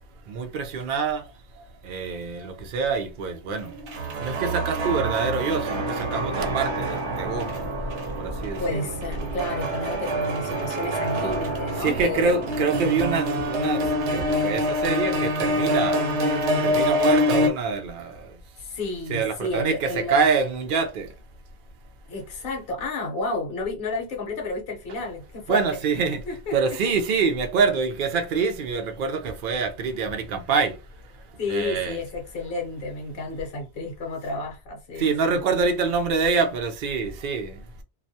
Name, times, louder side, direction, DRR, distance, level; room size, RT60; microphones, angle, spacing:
voice 1, 0.3-7.7 8.1-8.9 11.8-16.2 16.6-18.4 19.1-21.1 25.5-26.2 26.5-32.0 35.0-37.8, right 5 dB, 60° right, 0.6 m, -26 dB
sound 1, 3.6-17.5, equal, 85° right, 0.9 m, -26 dB
voice 2, 8.6-12.5 18.6-20.2 22.1-26.6 31.4-35.6, left 2 dB, 60° left, 0.9 m, -31 dB
2.3 x 2.2 x 2.6 m
omnidirectional pair, 1.2 m